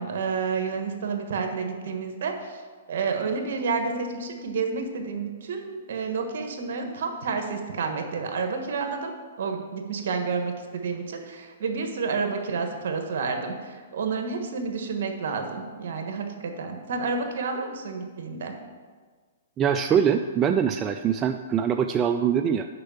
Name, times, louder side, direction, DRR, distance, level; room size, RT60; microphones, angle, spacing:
voice 1, 0.0-2.6 2.9-9.1 9.4-18.5, right 4 dB, 65° right, 4 dB, 1.4 m, -30 dB
voice 2, 19.6-22.7, right 8 dB, 20° right, 6 dB, 0.3 m, -23 dB
6.7 x 5.6 x 7.2 m, 1.5 s
hypercardioid pair, 140°, 0 cm